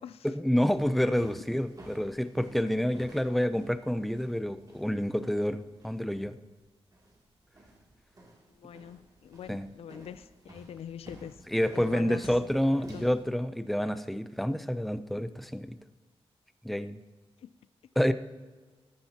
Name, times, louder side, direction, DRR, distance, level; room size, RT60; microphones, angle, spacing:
voice 1, 0.2-6.3 9.5-9.7 11.5-15.8 16.6-17.0 18.0-18.1, equal, ahead, 12 dB, 0.5 m, -28 dB
sound 1, 0.7-13.2, right 1 dB, 35° right, 2.7 m, -52 dB
voice 2, 1.0-1.4 8.5-11.4 11.7-12.4 12.7-13.1 17.4-17.5, left 8 dB, 70° left, 15 dB, 0.4 m, -44 dB
13.5 x 10.0 x 2.9 m, 1.3 s
wide cardioid pair, 100°, 11 cm